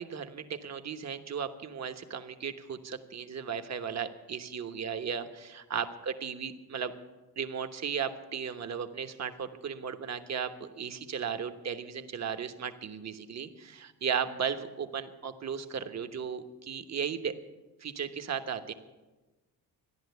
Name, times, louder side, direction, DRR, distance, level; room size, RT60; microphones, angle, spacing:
voice 1, 0.0-6.9 7.4-17.4 17.8-18.7, right 7 dB, 45° right, 8 dB, 1.2 m, -36 dB
14.0 x 10.5 x 8.2 m, 1.2 s
cardioid pair, 110°, 39 cm